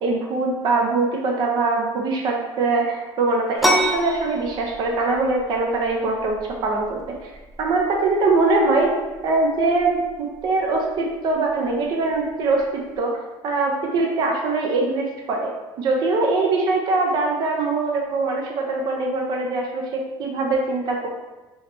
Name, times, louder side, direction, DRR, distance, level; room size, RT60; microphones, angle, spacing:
voice 1, 0.0-7.3 7.6-9.0 9.2-21.1, right 3 dB, 50° right, 1 dB, 0.6 m, -22 dB
sound 1, 3.6-13.0, equal, ahead, 0.4 m, -30 dB
3.2 x 3.1 x 3.0 m, 1.1 s
cardioid pair, 155°, 10 cm